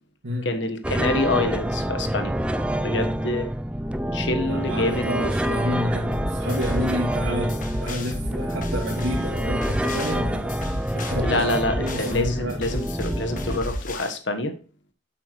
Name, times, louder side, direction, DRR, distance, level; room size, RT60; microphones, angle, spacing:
voice 1, 0.4-2.3 2.8-3.5 4.1-5.1 11.2-14.5, left 2 dB, 65° left, 7 dB, 1.3 m, -26 dB
sound 1, 0.8-13.6, equal, 5° right, 0.4 m, -27 dB
voice 2, 4.4-10.6 10.9-12.6, equal, 90° right, -5 dB, 2.5 m, -30 dB
sound 2, 6.1-14.1, left 1 dB, 40° left, 1.3 m, -32 dB
9.1 x 8.3 x 3.1 m, 0.38 s
head